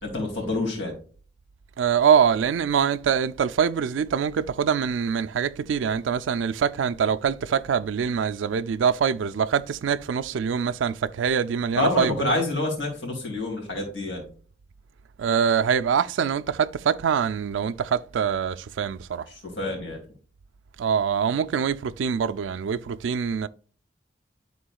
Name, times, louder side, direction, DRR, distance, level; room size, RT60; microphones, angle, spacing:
voice 1, 0.0-0.9 11.8-14.3 19.5-20.0, left 2 dB, 85° left, 2.6 m, -27 dB
voice 2, 1.8-12.2 15.2-19.3 20.8-23.5, right 7 dB, 90° right, 0.4 m, -24 dB
11.5 x 3.9 x 2.3 m
head